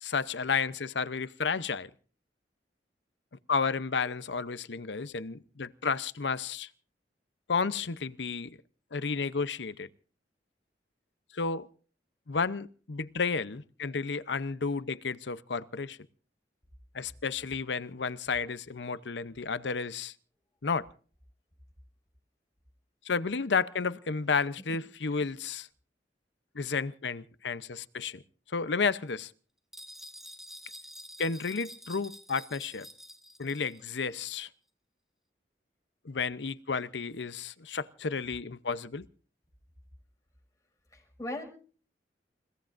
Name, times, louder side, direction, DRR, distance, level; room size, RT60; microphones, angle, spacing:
voice 1, 0.0-1.9 3.5-6.7 7.5-8.6 8.9-9.9 11.3-11.7 12.3-16.0 16.9-20.1 20.6-20.9 23.0-25.7 26.5-28.2 28.5-29.3 31.2-32.9 33.4-34.5 36.0-39.1, left 5 dB, 90° left, 0.8 m, -32 dB
sound 1, 29.7-33.9, equal, ahead, 1.3 m, -48 dB
voice 2, 40.9-41.4, left 1 dB, 20° left, 6.0 m, -39 dB
29.0 x 17.0 x 2.6 m
head